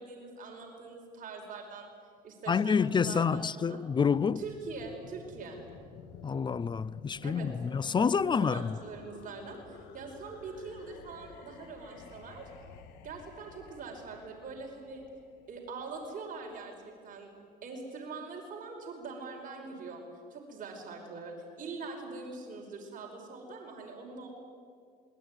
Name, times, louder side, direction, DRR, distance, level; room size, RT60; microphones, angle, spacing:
voice 1, 0.0-1.9 2.2-3.8 4.4-5.6 7.2-7.5 8.1-12.5 13.0-15.0 15.5-17.3 17.6-20.0 20.3-24.3, right 4 dB, 55° right, 5.3 m, -43 dB
voice 2, 2.5-4.4 6.2-8.8, left 6 dB, 25° left, 0.6 m, -28 dB
sound 1, 3.8-16.6, left 6 dB, 90° left, 2.4 m, -52 dB
26.5 x 21.5 x 9.7 m
cardioid pair, 110°, 17 cm